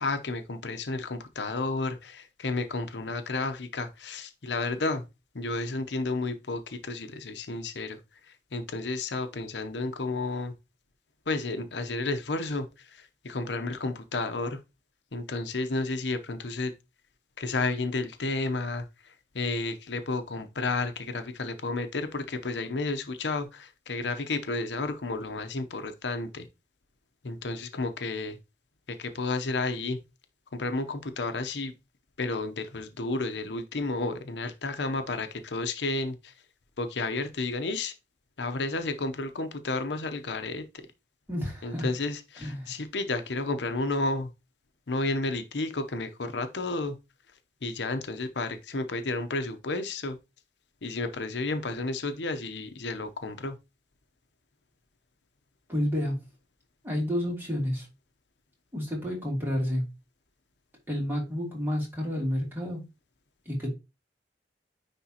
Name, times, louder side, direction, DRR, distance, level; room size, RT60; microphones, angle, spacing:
voice 1, 0.0-5.0 5.3-8.0 8.5-10.5 11.3-12.7 12.9-14.6 15.1-16.7 17.4-18.8 19.3-26.5 27.2-28.4 29.0-30.0 30.5-31.7 32.2-36.3 36.8-37.9 38.4-40.6 41.6-44.3 44.9-46.9 47.6-50.2 50.8-53.5, left 3 dB, 75° left, 0.8 m, -31 dB
voice 2, 41.3-41.9 42.4-42.7 55.7-56.2 56.8-57.9 58.7-59.8 60.9-62.8 63.4-63.7, equal, 15° right, 2.9 m, -30 dB
9.6 x 3.5 x 2.9 m
head